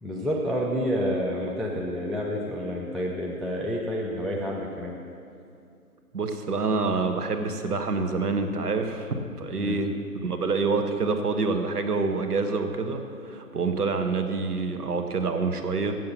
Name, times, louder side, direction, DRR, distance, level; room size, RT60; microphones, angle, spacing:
voice 1, 0.0-4.9 9.6-9.8, equal, ahead, -3 dB, 0.3 m, -29 dB
voice 2, 6.1-9.9 10.2-15.9, right 4 dB, 80° right, 7 dB, 1.2 m, -27 dB
7.6 x 7.5 x 7.3 m, 2.5 s
figure-of-eight pair, 160°, 45 cm